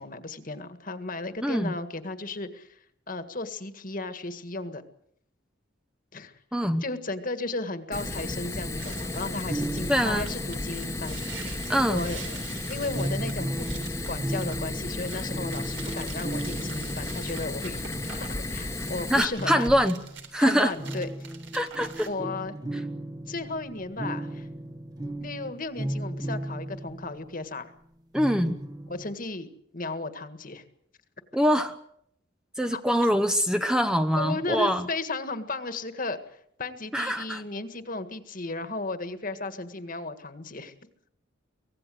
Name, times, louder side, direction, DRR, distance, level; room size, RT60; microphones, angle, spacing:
voice 1, 0.0-2.8 3.1-4.8 6.1-6.4 6.8-11.6 11.9-12.2 12.7-19.8 20.4-21.1 22.1-22.6 23.3-24.5 25.2-27.7 28.9-29.5 29.7-30.6 32.7-32.8 34.2-40.7, left 3 dB, 45° left, 10 dB, 1.8 m, -35 dB
voice 2, 1.4-1.7 6.5-6.8 9.9-10.3 11.7-12.0 19.1-19.9 20.3-20.7 21.5-22.1 28.1-28.6 31.3-31.8 32.6-34.8 36.9-37.4, equal, 5° right, 7 dB, 0.9 m, -24 dB
Fire, 7.9-19.2, left 2 dB, 15° left, 1.3 m, -34 dB
sound 1, 8.8-22.1, right 4 dB, 70° right, 3.7 m, -45 dB
sound 2, 9.5-11.6 12.9-18.2 19.4-27.5 28.1-29.1, right 1 dB, 20° right, 1.3 m, -36 dB
24.5 x 17.5 x 7.8 m, 0.71 s
head